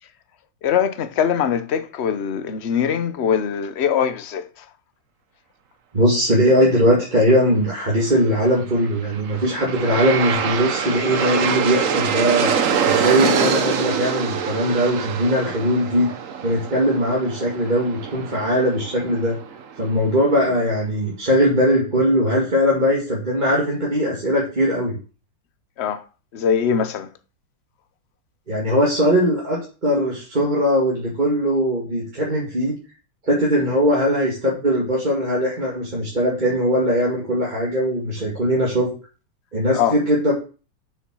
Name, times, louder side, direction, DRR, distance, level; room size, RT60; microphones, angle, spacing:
voice 1, 0.6-4.6 25.8-26.0 26.3-27.1 39.7-40.0, left 8 dB, 50° left, 0.8 m, -22 dB
voice 2, 5.9-16.1 16.4-19.4 19.8-25.0 28.5-32.7 33.3-38.9 39.5-40.3, equal, 25° right, 2.3 m, -20 dB
Aircraft, 8.8-19.9, right 6 dB, 50° right, 1.1 m, -24 dB
7.1 x 6.9 x 6.1 m
omnidirectional pair, 2.0 m